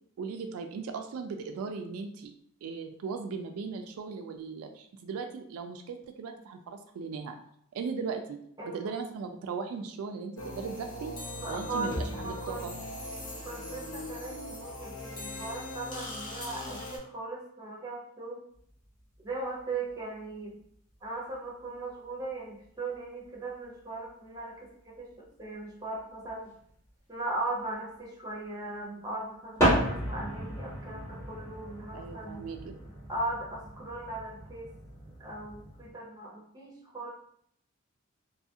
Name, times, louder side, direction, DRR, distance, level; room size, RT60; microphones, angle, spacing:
voice 1, 0.2-2.3 2.6-7.3 7.7-8.4 8.7-11.1 11.5-12.7 31.9-32.8, right 5 dB, 80° right, 5 dB, 0.3 m, -38 dB
voice 2, 8.6-8.9 11.3-12.6 13.4-18.4 19.2-20.6 21.0-26.5 27.1-32.4 33.1-34.7 35.2-37.1, right 2 dB, 20° right, -3 dB, 0.6 m, -38 dB
sound 1, 10.4-17.0, left 1 dB, 80° left, 0.9 m, -39 dB
sound 2, 18.5-19.3 19.6-20.0 21.0-21.1 21.3-21.4 21.9-22.0 22.9-23.0 23.2-23.3 24.1-24.2 24.4-24.5 24.6-24.7 26.0-26.7 29.6-35.9, right 1 dB, 15° left, 1.0 m, -33 dB
2.7 x 2.4 x 2.7 m, 0.69 s
head